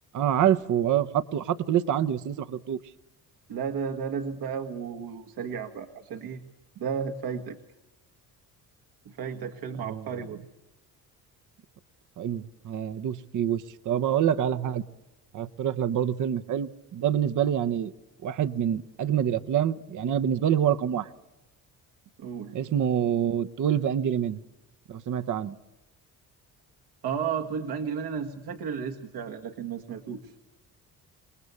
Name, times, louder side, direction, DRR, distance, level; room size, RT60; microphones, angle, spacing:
voice 1, 0.1-2.8 9.8-10.1 12.2-14.8 15.3-17.9 18.2-21.1 22.5-24.4 24.9-25.5, right 9 dB, 55° right, 12 dB, 1.0 m, -26 dB
voice 2, 3.5-6.4 6.8-7.6 9.1-10.4 22.2-22.5 27.0-30.3, right 6 dB, 70° right, 5 dB, 1.9 m, -33 dB
28.0 x 19.5 x 8.4 m, 0.98 s
cardioid pair, 120°, 37 cm